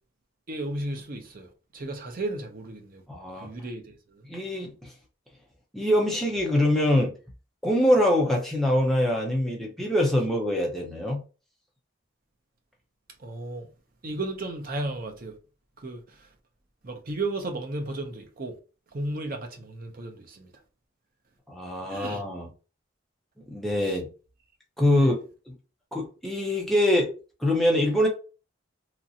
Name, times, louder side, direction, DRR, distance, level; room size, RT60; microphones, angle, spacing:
voice 1, 0.5-3.0 3.4-4.2 13.2-13.7 14.0-15.3 15.8-16.3 16.8-18.6 18.9-20.5 21.9-22.2 23.8-24.0 24.9-25.1, right 2 dB, 45° right, 0.6 m, -34 dB
voice 2, 3.1-3.5 4.3-4.9 5.7-7.1 7.6-11.2 21.5-22.5 23.5-24.1 24.8-25.2 25.5-25.6 25.9-27.1 27.4-28.1, left 1 dB, ahead, 0.6 m, -24 dB
2.9 x 2.5 x 2.7 m
head